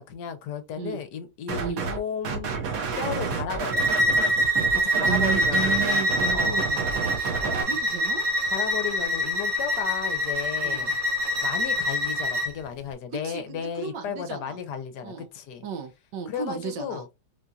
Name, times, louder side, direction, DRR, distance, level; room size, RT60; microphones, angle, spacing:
voice 1, 0.0-2.5 3.0-3.9 4.7-6.0 6.3-6.6 7.6-7.8 8.5-11.0 11.4-15.6 16.3-17.1, left 7 dB, 70° left, 1.3 m, -34 dB
sound 1, 1.5-2.0 2.2-7.6, right 5 dB, 55° right, 1.3 m, -30 dB
Bowed string instrument, 3.7-12.5, equal, 30° right, 0.8 m, -25 dB
voice 2, 5.1-8.2 10.6-10.9 13.2-14.6 15.0-15.3 15.6-17.0, right 7 dB, 80° right, 1.6 m, -34 dB
4.4 x 2.6 x 2.2 m
omnidirectional pair, 1.9 m